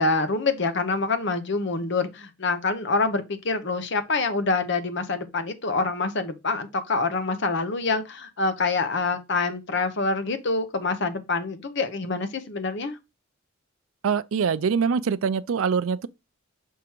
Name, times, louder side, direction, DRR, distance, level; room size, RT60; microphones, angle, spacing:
voice 1, 0.0-13.0, left 3 dB, 60° left, 0.9 m, -26 dB
voice 2, 14.0-16.1, right 6 dB, 80° right, 0.4 m, -24 dB
6.0 x 3.7 x 4.5 m
head